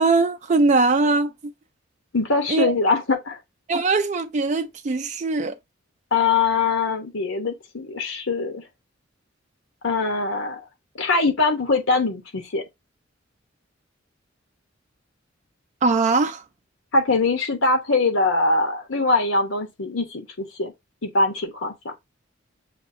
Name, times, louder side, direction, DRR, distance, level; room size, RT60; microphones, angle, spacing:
voice 1, 0.0-1.5 2.5-2.8 3.7-5.6 15.8-16.4, right 3 dB, 35° right, 0.4 m, -21 dB
voice 2, 2.1-3.4 6.1-8.7 9.8-10.6 10.9-12.6 16.9-20.7 21.0-21.9, left 3 dB, 85° left, 1.0 m, -22 dB
7.0 x 2.5 x 2.6 m
head